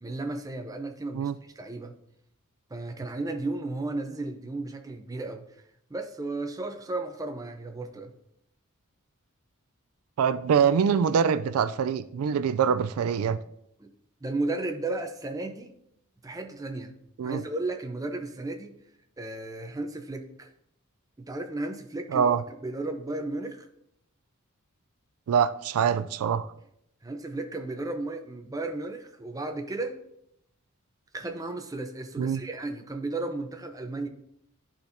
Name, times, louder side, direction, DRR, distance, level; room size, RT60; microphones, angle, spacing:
voice 1, 0.0-1.3 1.6-2.0 2.7-5.5 5.9-8.1 13.8-13.9 14.2-15.7 16.2-17.0 17.2-18.7 19.2-20.5 21.2-23.7 27.0-30.0 31.1-34.1, right 2 dB, 15° right, 0.6 m, -34 dB
voice 2, 10.2-13.4 17.2-17.4 22.1-22.4 25.3-26.5 32.2-32.4, right 7 dB, 85° right, 0.3 m, -24 dB
11.5 x 4.4 x 2.6 m
head